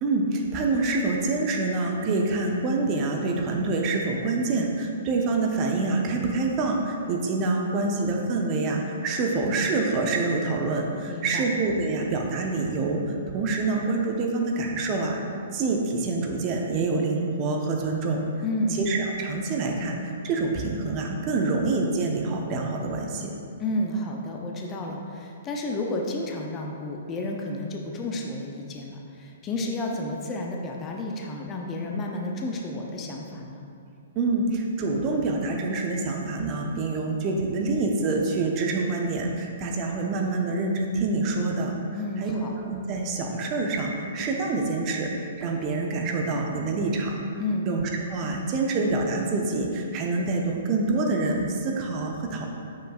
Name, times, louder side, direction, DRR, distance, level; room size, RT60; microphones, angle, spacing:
voice 1, 0.0-15.2 15.5-18.2 18.7-23.3 34.2-41.8 42.2-47.1 47.6-52.5, right 3 dB, 30° right, 1 dB, 0.7 m, -26 dB
voice 2, 11.1-11.5 18.4-18.8 23.6-33.6 41.9-42.5 47.4-47.7, left 1 dB, 25° left, 0 dB, 0.6 m, -31 dB
6.8 x 6.3 x 2.4 m, 2.4 s
figure-of-eight pair, 115°, 0 cm